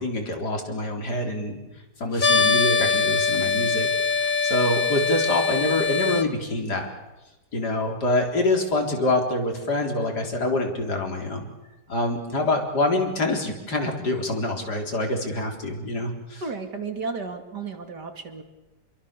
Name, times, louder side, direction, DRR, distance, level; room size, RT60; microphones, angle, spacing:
voice 1, 0.0-1.6 2.0-6.9 7.5-11.5 11.9-16.4, left 2 dB, 75° left, 3 dB, 4.5 m, -26 dB
sound 1, 2.2-6.2, left 5 dB, 30° left, 1.2 m, -22 dB
voice 2, 16.4-18.4, right 4 dB, 85° right, 6 dB, 3.3 m, -33 dB
29.0 x 22.5 x 6.9 m, 1.0 s
omnidirectional pair, 1.8 m